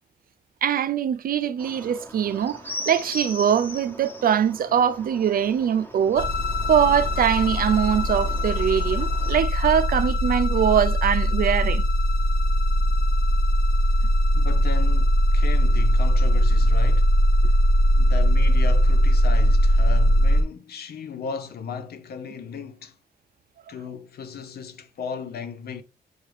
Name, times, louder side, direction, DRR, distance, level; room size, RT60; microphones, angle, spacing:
voice 1, 0.6-6.3 6.7-11.8, right 9 dB, 60° right, 0.4 m, -22 dB
sound 1, 1.6-9.3, left 1 dB, 10° left, 1.1 m, -40 dB
sound 2, 6.1-20.4, equal, 85° left, 1.3 m, -20 dB
voice 2, 14.3-17.1 18.0-22.9 23.7-25.8, left 6 dB, 70° left, 0.7 m, -35 dB
6.2 x 2.4 x 3.3 m
cardioid pair, 80°, 17 cm